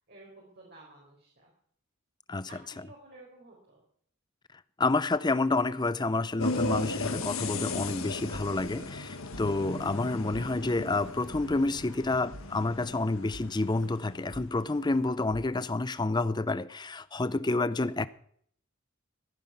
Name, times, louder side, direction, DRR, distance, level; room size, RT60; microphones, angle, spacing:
voice 1, 0.1-1.5 2.5-3.8 12.2-12.6, right 2 dB, 50° right, 4.6 m, -53 dB
voice 2, 4.8-18.1, left 2 dB, 20° left, 0.5 m, -29 dB
sound 1, 6.4-14.8, left 2 dB, 80° left, 1.6 m, -37 dB
sound 2, 8.3-9.4 9.7-9.9 10.3-10.4 10.9-12.0 12.3-16.3, right 1 dB, 85° right, 1.3 m, -49 dB
15.0 x 9.4 x 5.9 m
head